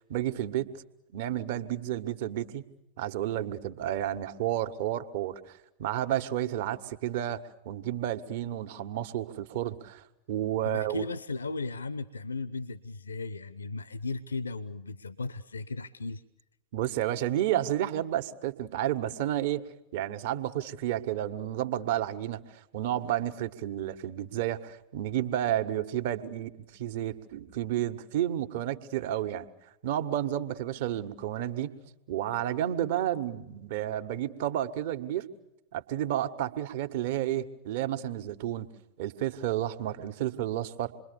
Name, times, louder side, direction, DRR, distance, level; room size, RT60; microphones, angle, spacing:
voice 1, 0.1-0.7 1.1-2.6 3.0-11.0 16.7-19.6 19.9-22.4 22.7-29.5 29.8-31.7 32.1-35.3 35.7-38.7 39.0-40.9, right 12 dB, 50° right, 10 dB, 1.6 m, -31 dB
voice 2, 10.6-16.2, left 3 dB, 75° left, 18 dB, 0.8 m, -36 dB
28.0 x 23.0 x 7.0 m, 0.88 s
figure-of-eight pair, 90°, 0 cm